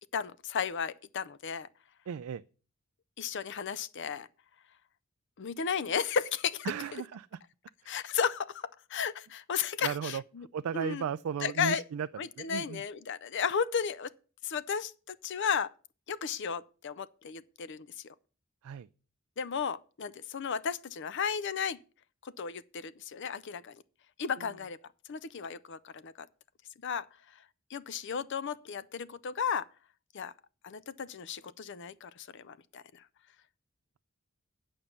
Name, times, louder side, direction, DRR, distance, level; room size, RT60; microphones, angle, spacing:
voice 1, 0.1-1.7 3.2-4.3 5.4-6.7 7.9-10.5 10.7-11.0 11.4-11.8 12.2-14.1 14.4-15.7 16.1-18.1 19.4-21.8 22.2-23.8 24.2-24.8 25.1-26.3 26.8-27.1 27.7-29.7 30.1-30.3 30.6-33.0, left 6 dB, 60° left, 0.5 m, -34 dB
voice 2, 2.1-2.4 6.6-7.4 7.8-8.0 9.8-10.2 10.5-12.1 12.4-12.8 18.6-18.9 24.4-24.5, right 7 dB, 90° right, 0.3 m, -36 dB
8.9 x 5.4 x 7.2 m
head